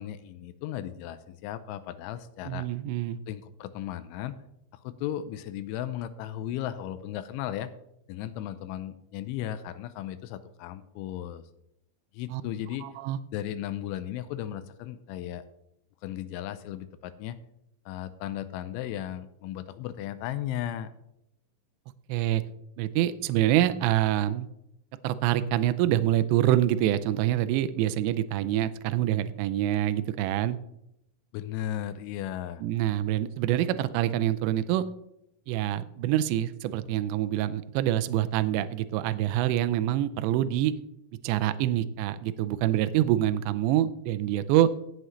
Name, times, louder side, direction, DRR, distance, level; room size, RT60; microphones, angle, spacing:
voice 1, 0.0-2.7 3.3-4.4 4.7-7.7 8.1-11.4 12.1-12.9 13.3-15.4 16.0-17.4 17.9-20.9 31.3-32.6, left 11 dB, 85° left, 12 dB, 3.0 m, -35 dB
voice 2, 2.5-3.2 12.3-12.4 12.8-13.2 22.1-22.4 22.8-24.5 25.0-30.6 32.6-34.8 35.5-40.7 41.2-44.7, right 13 dB, 85° right, 11 dB, 2.6 m, -26 dB
16.5 x 7.9 x 3.2 m, 0.81 s
omnidirectional pair, 5.6 m